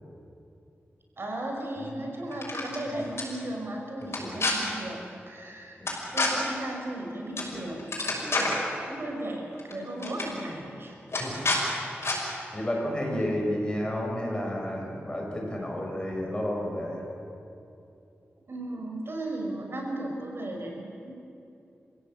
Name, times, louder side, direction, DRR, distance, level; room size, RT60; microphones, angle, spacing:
voice 1, 1.2-5.8 6.1-10.9 11.5-11.8 18.5-21.1, right 1 dB, 55° right, 1 dB, 5.0 m, -36 dB
voice 2, 1.8-2.1 2.9-3.0 4.0-4.4 5.8-6.0 11.1-11.7 12.5-17.1, equal, 20° left, -1 dB, 5.8 m, -32 dB
sound 1, 2.3-2.8 3.2-3.3 4.1-4.5 5.9-6.3 7.4-7.5 7.8-8.6 9.6-9.7 10.0-10.3 11.1-11.6 12.0-12.2, left 3 dB, 60° left, 6.0 m, -28 dB
28.5 x 16.0 x 8.7 m, 2.7 s
wide cardioid pair, 100°, 5 cm